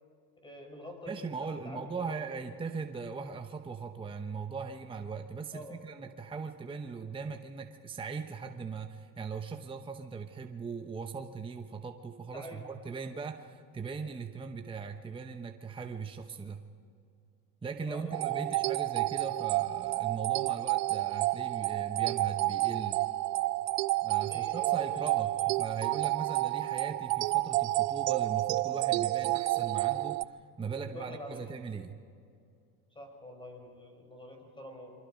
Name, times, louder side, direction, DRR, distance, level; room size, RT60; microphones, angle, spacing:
voice 1, 0.4-2.2 5.5-5.8 12.3-12.6 17.9-18.8 24.2-25.7 30.8-31.5 32.9-34.9, left 1 dB, 10° left, 3 dB, 5.7 m, -47 dB
voice 2, 1.1-16.6 17.6-23.0 24.0-30.2 30.6-32.0, right 5 dB, 10° right, 5 dB, 0.9 m, -39 dB
sound 1, 18.1-30.2, right 18 dB, 80° right, 0.6 m, -30 dB
28.0 x 23.5 x 5.1 m, 2.4 s
supercardioid pair, 110°, 47 cm